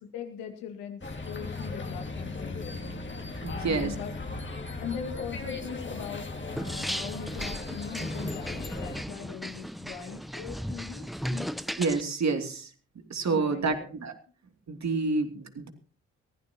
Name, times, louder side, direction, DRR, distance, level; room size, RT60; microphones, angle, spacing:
voice 1, 0.1-3.0 3.5-4.1 4.8-6.3 6.5-11.6 13.3-13.9, left 7 dB, 85° left, 5 dB, 2.2 m, -40 dB
sound 1, 1.0-9.0, left 3 dB, 35° left, 2.7 m, -37 dB
voice 2, 3.4-3.9 11.8-12.7 13.1-14.1 14.7-15.7, right 4 dB, 50° right, 6 dB, 2.8 m, -28 dB
sound 2, 6.6-12.0, equal, ahead, 0.8 m, -36 dB
22.5 x 16.0 x 3.0 m, 0.41 s
hypercardioid pair, 40°, 34 cm